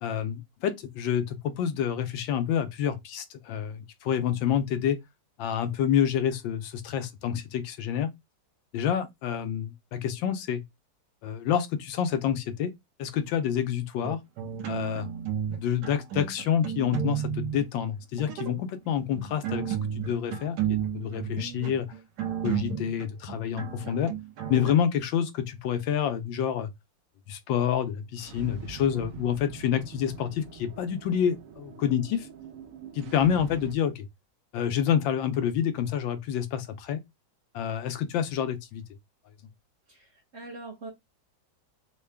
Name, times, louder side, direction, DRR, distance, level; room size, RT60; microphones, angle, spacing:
voice 1, 0.0-5.0 5.4-8.1 8.7-10.6 11.2-12.7 13.0-14.2 14.7-15.1 15.6-21.9 22.4-24.1 24.5-26.7 27.3-32.3 32.9-34.1 34.5-37.0 37.5-38.8, left 9 dB, 85° left, 1.4 m, -28 dB
sound 1, 14.0-15.6 15.8-17.6 18.1-18.6 19.1-24.7, right 9 dB, 65° right, 1.2 m, -32 dB
sound 2, 28.1-33.7, right 6 dB, 90° right, 0.7 m, -44 dB
voice 2, 39.9-40.9, right 2 dB, 50° right, 0.9 m, -43 dB
3.7 x 2.2 x 3.3 m
omnidirectional pair, 2.0 m